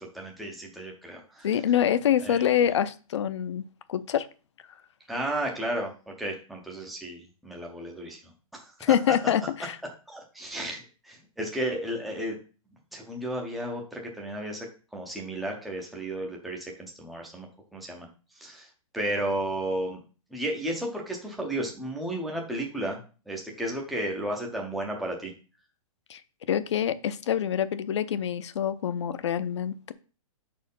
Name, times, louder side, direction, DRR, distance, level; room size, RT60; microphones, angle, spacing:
voice 1, 0.0-1.5 2.2-2.5 5.1-9.1 10.1-12.4 12.9-14.7 14.9-17.5 17.7-18.1 18.3-18.7 18.9-20.0 20.3-23.0 23.3-25.3, right 1 dB, ahead, 0.5 m, -33 dB
voice 2, 1.4-4.3 8.8-9.8 26.1-26.2 26.5-29.9, left 9 dB, 50° left, 0.5 m, -26 dB
5.7 x 4.3 x 5.3 m
hypercardioid pair, 175°, 18 cm